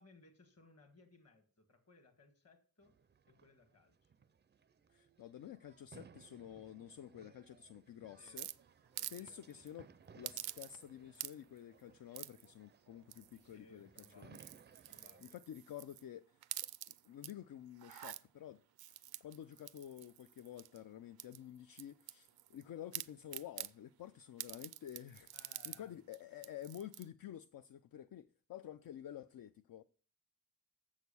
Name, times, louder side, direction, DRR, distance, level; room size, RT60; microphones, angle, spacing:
voice 1, 0.0-3.0 3.3-4.1 8.1-8.4 8.9-9.6 13.4-14.6 14.9-15.3 25.3-26.0, left 3 dB, 40° left, 1.7 m, -65 dB
sound 1, 2.8-15.3, right 6 dB, 30° right, 0.4 m, -63 dB
voice 2, 4.9-8.5 9.1-9.9 10.1-13.9 14.2-14.4 15.0-18.6 18.9-25.3 25.6-29.8, left 10 dB, 70° left, 0.5 m, -51 dB
sound 2, 8.4-9.2 9.5-9.7 10.2-10.9 11.1-11.6 12.1-12.5 13.1-13.5 13.9-16.0 16.4-17.3 17.7-18.2 18.8-20.8 21.2-22.6 22.9-23.7 24.4-25.8 26.1-26.2 26.4-27.1, right 13 dB, 85° right, 0.5 m, -47 dB
7.2 x 6.5 x 6.9 m
wide cardioid pair, 135°, 36 cm